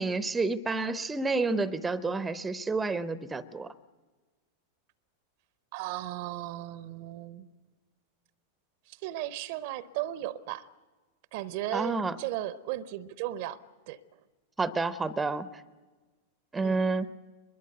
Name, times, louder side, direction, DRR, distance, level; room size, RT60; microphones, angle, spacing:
voice 1, 0.0-3.7 11.7-12.2 14.6-15.5 16.5-17.1, right 3 dB, 10° right, 0.8 m, -29 dB
voice 2, 5.7-7.5 8.9-10.7 11.3-14.0 16.6-16.8, right 14 dB, 50° right, 0.8 m, -36 dB
24.0 x 21.5 x 8.0 m
figure-of-eight pair, 90°, 0 cm